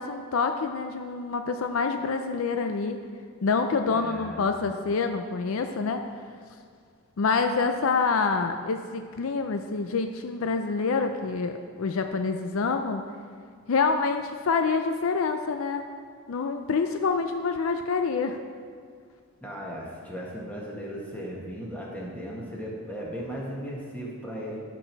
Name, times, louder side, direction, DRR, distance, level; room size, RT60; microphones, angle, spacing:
voice 1, 0.0-3.0 3.4-6.0 7.2-13.0 13.7-15.8 16.3-18.4, left 4 dB, 70° left, 7 dB, 0.5 m, -27 dB
voice 2, 3.9-4.6 19.4-24.6, equal, 5° left, -4 dB, 1.6 m, -37 dB
11.5 x 6.0 x 4.6 m, 2.1 s
head